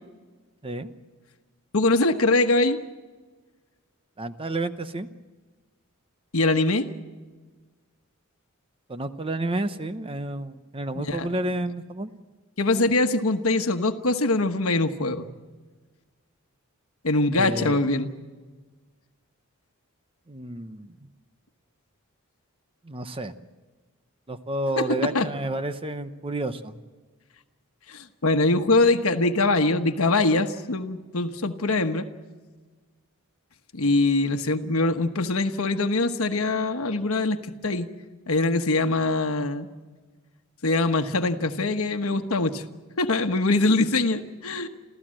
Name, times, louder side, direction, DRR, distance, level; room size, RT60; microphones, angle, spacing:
voice 1, 1.7-2.8 6.3-6.9 11.0-11.3 12.6-15.3 17.0-18.1 24.8-25.3 27.9-32.1 33.7-37.9 38.3-39.7 40.6-42.6 43.0-44.7, left 2 dB, 70° left, 6 dB, 1.2 m, -23 dB
voice 2, 4.2-5.1 8.9-12.1 17.3-17.8 20.3-20.9 22.8-23.3 24.3-26.8, right 1 dB, 25° right, 10 dB, 0.8 m, -30 dB
28.0 x 15.0 x 7.6 m, 1.4 s
head